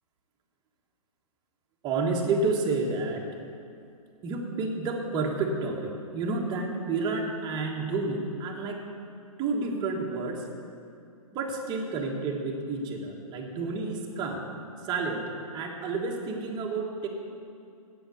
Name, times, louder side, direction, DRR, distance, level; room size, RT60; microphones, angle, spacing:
voice 1, 1.8-3.3 4.2-8.8 9.4-10.4 11.3-14.4 14.8-17.1, right 3 dB, 20° right, 0 dB, 1.5 m, -30 dB
8.4 x 7.9 x 8.3 m, 2.5 s
hypercardioid pair, 130°, 19 cm